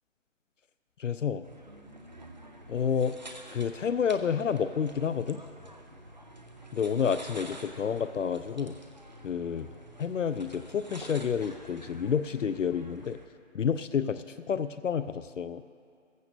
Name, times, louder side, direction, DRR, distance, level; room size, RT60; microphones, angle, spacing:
voice 1, 1.0-1.4 2.7-3.2 3.5-5.4 6.7-8.8 9.2-9.7 10.0-13.2 13.5-15.6, left 7 dB, 75° left, 12 dB, 0.5 m, -29 dB
sound 1, 1.4-13.3, right 1 dB, 35° right, 0.6 m, -49 dB
15.5 x 14.5 x 2.6 m, 2.3 s
figure-of-eight pair, 175°, 38 cm